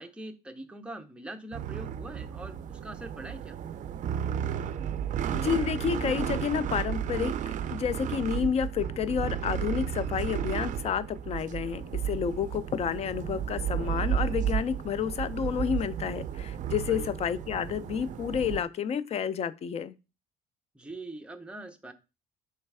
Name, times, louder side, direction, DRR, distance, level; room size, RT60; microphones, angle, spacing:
voice 1, 0.0-3.6 16.8-17.1 20.7-21.9, right 2 dB, 5° right, 0.6 m, -43 dB
sound 1, 1.5-18.6, right 9 dB, 50° right, 0.4 m, -33 dB
voice 2, 5.3-19.9, left 7 dB, 40° left, 0.4 m, -30 dB
3.2 x 3.1 x 4.7 m
cardioid pair, 110°, 17 cm